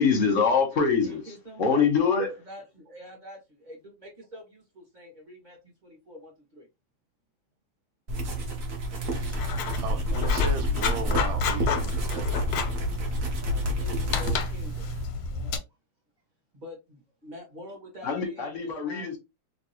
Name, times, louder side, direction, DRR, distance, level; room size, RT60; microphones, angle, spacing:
voice 1, 0.0-1.2 1.6-2.3 18.0-19.2, left 5 dB, 50° left, 1.1 m, -24 dB
voice 2, 1.0-1.9 2.5-6.7 13.4-14.9 15.2-15.5 16.5-19.2, left 1 dB, 25° right, 1.2 m, -46 dB
sound 1, 8.1-15.0, equal, 50° right, 1.0 m, -29 dB
Writing, 9.1-15.6, left 4 dB, 85° left, 1.5 m, -30 dB
voice 3, 9.2-12.6, right 5 dB, 75° right, 1.3 m, -37 dB
3.3 x 2.9 x 2.9 m
omnidirectional pair, 2.3 m